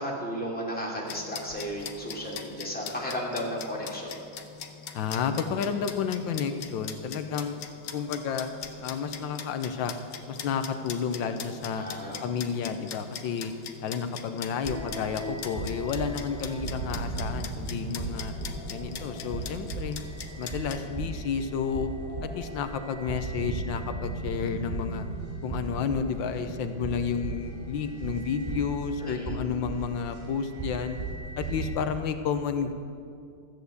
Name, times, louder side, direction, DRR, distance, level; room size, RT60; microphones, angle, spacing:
voice 1, 0.0-4.2 11.7-12.2 16.4-16.7 29.0-29.4, equal, 5° left, -4 dB, 2.6 m, -34 dB
sound 1, 1.1-20.8, left 7 dB, 70° left, 1.5 m, -42 dB
voice 2, 4.9-7.6 7.9-8.5 8.8-10.0 10.3-11.8 12.2-13.5 13.8-18.3 18.7-20.0 20.4-21.9 22.2-25.1 25.4-31.0 31.4-32.7, left 6 dB, 85° left, 8 dB, 1.5 m, -31 dB
sound 2, 14.6-31.7, right 3 dB, 25° right, 3.8 m, -36 dB
14.0 x 8.4 x 8.0 m, 2.4 s
omnidirectional pair, 2.1 m